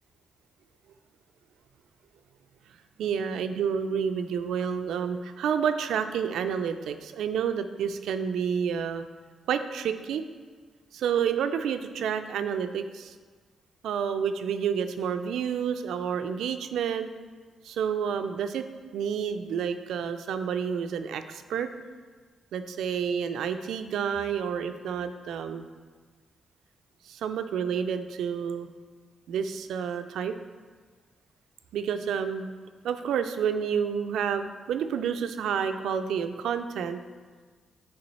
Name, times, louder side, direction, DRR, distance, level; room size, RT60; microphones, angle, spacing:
voice 1, 3.0-9.0 9.5-10.2 10.9-13.1 13.8-17.1 17.6-18.6 18.9-21.7 22.5-25.7 27.1-28.7 29.3-30.3 31.7-32.5 32.8-37.0, right 7 dB, 75° right, 9 dB, 0.3 m, -29 dB
6.6 x 3.8 x 4.1 m, 1.5 s
hypercardioid pair, 40°, 0 cm